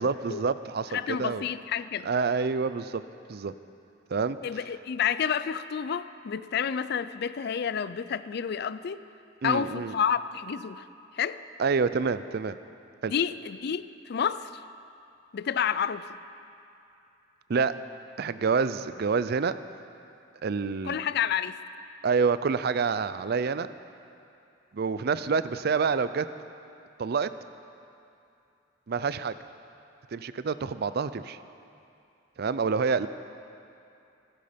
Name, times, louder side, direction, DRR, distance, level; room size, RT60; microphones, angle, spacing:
voice 1, 0.0-1.4 2.0-3.0 3.3-3.5 4.1-4.4 9.4-9.9 11.6-12.6 13.0-13.1 17.5-17.7 18.2-19.6 20.4-21.0 22.0-23.7 24.7-26.3 27.0-27.3 28.9-29.4 30.1-31.4 32.4-33.1, right 5 dB, 55° right, 14 dB, 0.5 m, -27 dB
voice 2, 0.9-2.1 4.4-9.0 9.4-10.9 11.1-11.4 13.1-14.5 15.3-16.1 20.8-21.6, left 7 dB, 60° left, 15 dB, 0.4 m, -29 dB
16.0 x 14.0 x 5.2 m, 2.6 s
head